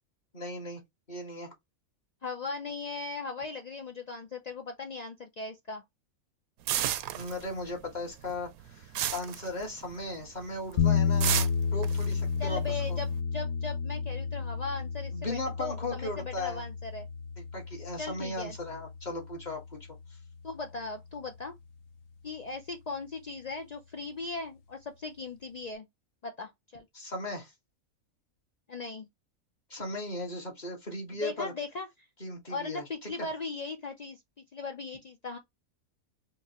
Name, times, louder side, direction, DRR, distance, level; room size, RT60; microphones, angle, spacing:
voice 1, 0.3-0.8 1.1-1.5 7.1-13.0 15.1-16.6 17.4-20.0 26.9-27.5 29.7-31.5 32.2-33.1, left 2 dB, 30° left, 1.6 m, -37 dB
voice 2, 2.2-5.8 12.4-17.1 18.0-18.6 20.4-21.5 22.2-25.9 26.2-26.9 28.7-29.1 31.1-31.9 32.5-34.2 34.5-35.4, left 4 dB, 90° left, 0.3 m, -38 dB
sound 1, 6.7-7.8 8.1-10.1 10.4-10.7 11.2-13.1, right 11 dB, 85° right, 1.0 m, -32 dB
sound 2, 10.8-20.8, left 6 dB, 60° left, 0.8 m, -32 dB
4.6 x 3.0 x 2.9 m
omnidirectional pair, 1.5 m